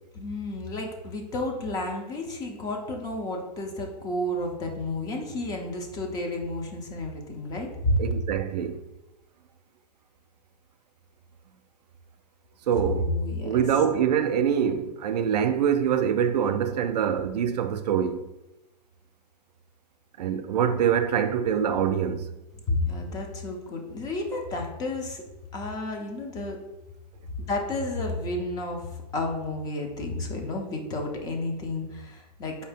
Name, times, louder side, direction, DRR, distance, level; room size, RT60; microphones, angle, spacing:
voice 1, 0.1-8.1 12.9-13.6 22.7-25.2 25.5-26.6 27.4-32.6, left 2 dB, 20° left, 0.5 m, -31 dB
voice 2, 8.0-8.8 12.7-13.1 13.4-18.3 20.2-22.3, right 8 dB, 75° right, 0.5 m, -24 dB
4.7 x 2.7 x 3.5 m
hypercardioid pair, 155°, 21 cm